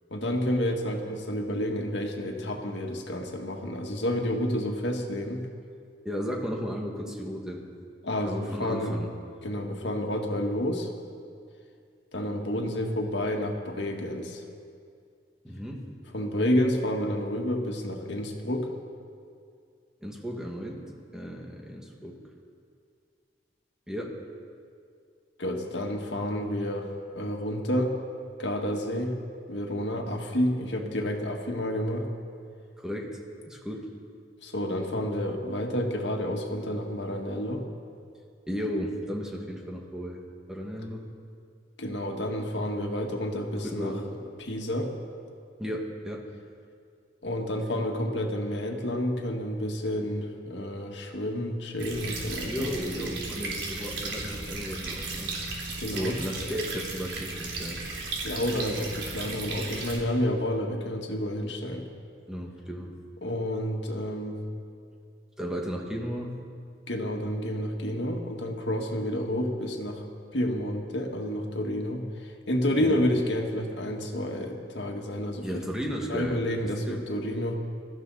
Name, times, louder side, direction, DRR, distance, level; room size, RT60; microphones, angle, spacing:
voice 1, 0.1-5.5 8.0-9.0 9.4-10.9 12.1-14.4 16.1-18.7 25.4-27.9 28.4-29.2 29.5-32.1 34.4-37.6 41.8-43.9 44.4-44.9 47.2-52.7 55.8-56.1 58.2-61.8 63.2-64.4 66.9-70.0 70.3-72.0 72.5-75.6 76.1-77.6, left 1 dB, 80° left, 2 dB, 1.9 m, -30 dB
voice 2, 6.0-7.6 8.2-9.1 15.4-15.9 20.0-20.8 21.1-22.2 23.9-24.2 32.8-33.2 33.5-33.9 38.5-40.2 40.5-41.0 43.6-44.1 45.6-46.2 52.4-55.4 55.9-57.8 62.3-63.0 65.4-66.3 72.8-73.0 75.4-77.0, equal, 5° right, -1 dB, 1.9 m, -34 dB
sound 1, 51.8-60.0, right 3 dB, 80° right, 3.3 m, -35 dB
22.0 x 14.0 x 4.1 m, 2.3 s
head